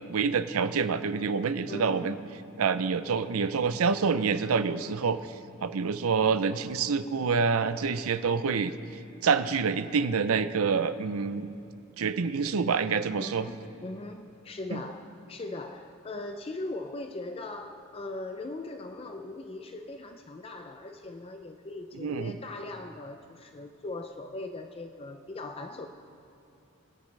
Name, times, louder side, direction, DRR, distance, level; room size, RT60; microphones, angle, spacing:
voice 1, 0.1-2.2 2.6-5.2 5.6-8.7 9.2-11.5 12.0-13.5 14.7-14.8 22.0-22.4, right 5 dB, 85° right, 12 dB, 0.5 m, -27 dB
voice 2, 1.7-2.1 13.2-25.9, left 2 dB, 25° left, 6 dB, 0.4 m, -40 dB
25.0 x 9.5 x 3.3 m, 2.7 s
head